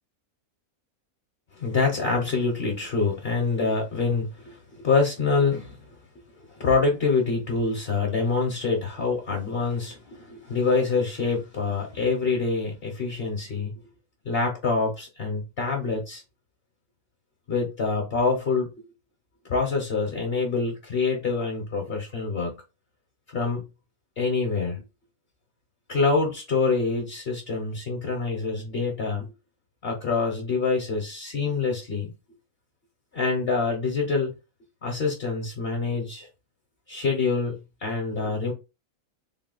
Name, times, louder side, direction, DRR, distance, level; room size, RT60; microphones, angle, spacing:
voice 1, 1.6-5.8 6.5-13.7 14.2-16.2 17.5-18.9 19.5-22.5 23.3-23.6 24.2-24.8 25.9-29.3 29.8-32.1 33.1-34.3 34.8-36.3 36.9-38.5, left 4 dB, 50° left, 1.0 m, -26 dB
3.7 x 2.3 x 3.8 m
omnidirectional pair, 1.5 m